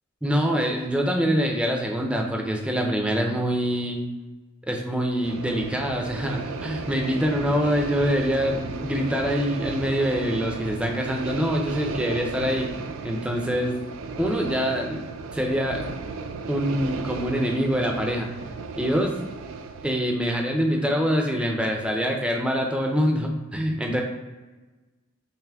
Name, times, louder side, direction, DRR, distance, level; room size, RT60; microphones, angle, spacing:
voice 1, 0.2-4.0 4.7-12.7 13.0-13.8 14.2-15.9 16.5-18.3 18.8-19.2 19.8-24.0, equal, 5° right, 1 dB, 0.5 m, -25 dB
sound 1, 5.2-20.0, right 4 dB, 70° right, 0.3 m, -35 dB
5.6 x 2.0 x 3.4 m, 1.2 s
head